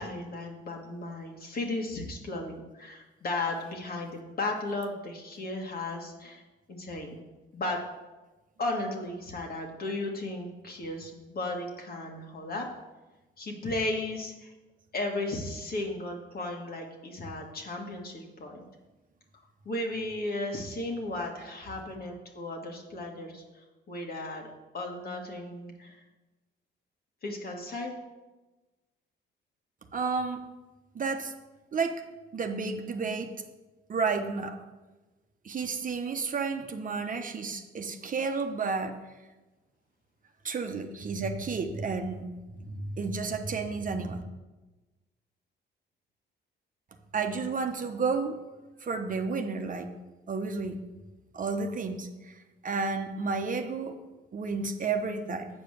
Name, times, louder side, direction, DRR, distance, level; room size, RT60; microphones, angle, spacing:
voice 1, 0.0-6.4 6.7-7.2 7.5-7.8 8.6-12.7 13.4-14.5 14.9-18.7 19.7-24.5 24.7-26.0 27.2-28.0, left 2 dB, 50° left, 1 dB, 1.9 m, -35 dB
voice 2, 29.9-30.4 30.9-31.3 31.7-32.0 32.3-33.3 33.9-34.6 35.4-38.9 40.4-42.3 42.6-44.2 47.1-48.3 48.8-49.9 50.3-50.8 51.3-52.3 52.6-53.9 54.3-55.5, right 4 dB, 45° right, 5 dB, 1.0 m, -31 dB
8.0 x 5.1 x 6.6 m, 1.1 s
cardioid pair, 80°, 20 cm